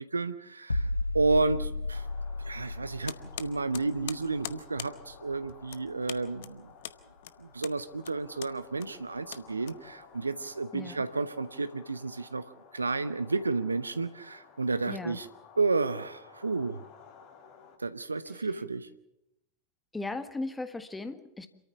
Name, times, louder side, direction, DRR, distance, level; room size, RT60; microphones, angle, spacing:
voice 1, 0.0-2.1 2.4-6.7 7.4-15.3 15.6-16.8 17.8-18.9, right 3 dB, 80° right, 13 dB, 0.8 m, -31 dB
sound 1, 0.7-6.4 6.7-6.9, left 2 dB, 85° left, 0.6 m, -35 dB
sound 2, 1.9-17.8, left 6 dB, 40° left, 2.7 m, -55 dB
sound 3, 3.0-10.2, left 13 dB, 55° left, 0.9 m, -44 dB
voice 2, 10.7-11.0 14.9-15.2 19.9-21.5, left 2 dB, 10° left, 10 dB, 1.5 m, -37 dB
27.5 x 13.5 x 7.1 m, 0.86 s
figure-of-eight pair, 90°, 0 cm